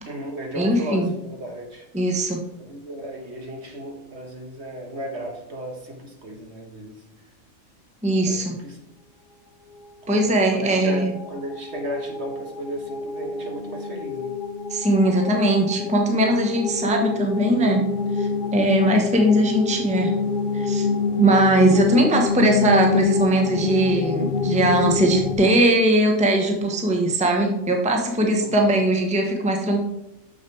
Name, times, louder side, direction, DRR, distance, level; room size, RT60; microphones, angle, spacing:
voice 1, 0.0-1.8 2.6-6.9 8.2-8.8 10.0-14.3 21.9-22.1 28.4-28.5, right 1 dB, 55° right, 2 dB, 1.5 m, -35 dB
voice 2, 0.6-1.1 1.9-2.4 8.0-8.6 10.1-11.1 14.7-17.9 18.1-20.1 20.5-20.9 21.2-29.9, right 1 dB, 5° right, 2 dB, 0.9 m, -20 dB
ioscbank in stack exp, 9.7-25.4, left 5 dB, 45° left, 0.8 m, -27 dB
6.7 x 6.4 x 4.6 m, 0.87 s
omnidirectional pair, 1.4 m